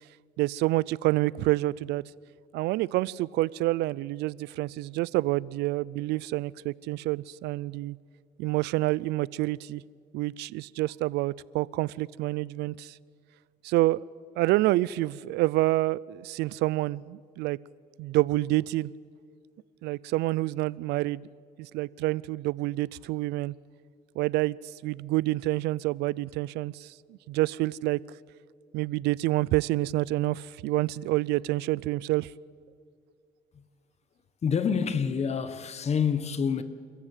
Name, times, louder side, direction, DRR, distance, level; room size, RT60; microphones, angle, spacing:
voice 1, 0.4-2.0 2.5-8.0 8.4-9.8 10.1-13.0 13.6-14.0 14.4-17.6 18.0-18.9 19.8-21.3 21.6-23.5 24.2-24.6 24.8-28.0 28.7-32.3, right 18 dB, 85° right, 0.5 m, -28 dB
voice 2, 34.4-36.6, left 6 dB, 40° left, 1.4 m, -27 dB
28.5 x 14.5 x 9.1 m
cardioid pair, 110°, 17 cm